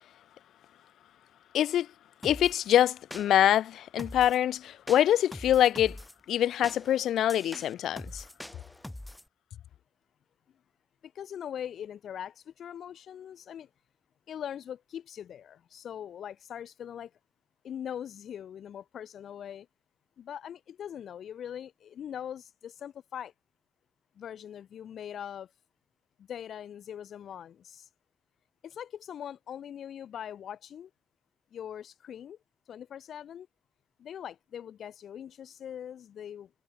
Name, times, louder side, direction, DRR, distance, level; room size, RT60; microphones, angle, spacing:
voice 1, 1.5-1.9 2.2-6.0 6.3-8.2, left 11 dB, 80° left, 0.4 m, -25 dB
sound 1, 2.2-2.6 3.1-3.6 4.0-4.4 4.9-6.1 6.6-9.3, left 1 dB, 10° left, 2.4 m, -43 dB
voice 2, 11.0-13.7 14.3-17.1 17.6-19.7 20.2-23.3 24.2-25.5 26.2-27.9 28.6-30.9 31.5-32.4 32.7-33.5 34.0-36.5, left 9 dB, 65° left, 1.3 m, -41 dB
cardioid pair, 125°, 0 cm